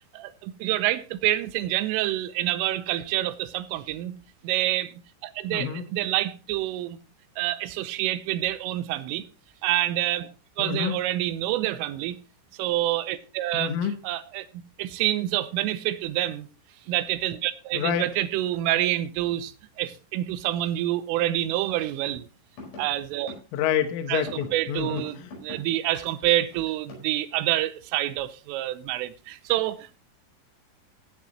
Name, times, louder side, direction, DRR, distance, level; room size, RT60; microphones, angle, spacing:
voice 1, 0.1-4.1 4.4-4.9 5.2-7.0 7.4-9.2 9.6-10.3 10.6-12.2 12.6-13.7 14.0-14.5 14.8-16.5 16.9-22.3 22.8-23.3 24.1-30.0, right 14 dB, 85° right, 3.3 m, -27 dB
voice 2, 5.5-5.8 10.6-11.0 13.5-14.0 17.7-18.1 23.5-25.3, left 9 dB, 80° left, 3.6 m, -28 dB
sound 1, 22.0-22.1 22.6-22.8 23.3-23.4 24.3-24.5 24.8-25.6 25.9-27.1, left 2 dB, 60° left, 7.0 m, -41 dB
17.0 x 9.5 x 3.0 m
omnidirectional pair, 5.8 m